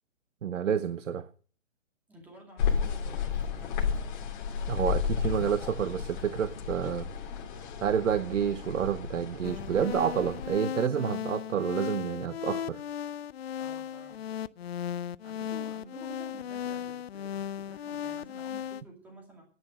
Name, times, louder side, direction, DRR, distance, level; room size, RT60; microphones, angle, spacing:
voice 1, 0.4-1.3 4.7-7.1 7.8-12.8, right 8 dB, 80° right, 0.9 m, -29 dB
voice 2, 2.1-4.3 13.6-14.2 15.2-19.4, right 1 dB, 5° right, 2.4 m, -51 dB
sound 1, 2.6-10.5, left 7 dB, 40° left, 2.5 m, -33 dB
sound 2, 9.4-18.8, left 9 dB, 55° left, 0.5 m, -36 dB
10.5 x 9.7 x 6.5 m
hypercardioid pair, 165°, 37 cm